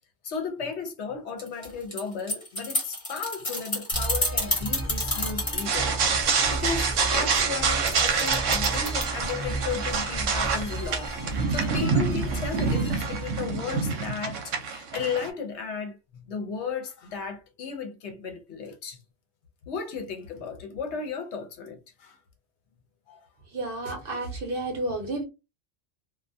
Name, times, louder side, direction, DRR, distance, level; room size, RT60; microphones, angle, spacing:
voice 1, 0.2-5.9 6.5-19.0 19.7-22.2 23.1-23.2, left 5 dB, 65° left, 0.8 m, -35 dB
sound 1, 1.4-5.7 7.9-9.0, left 1 dB, 25° left, 0.9 m, -28 dB
sound 2, 3.9-14.5, right 2 dB, 20° right, 0.7 m, -34 dB
sound 3, 5.7-15.3, right 5 dB, 75° right, 1.0 m, -27 dB
voice 2, 23.5-25.2, right 2 dB, 50° right, 0.8 m, -31 dB
2.3 x 2.2 x 2.5 m
omnidirectional pair, 1.3 m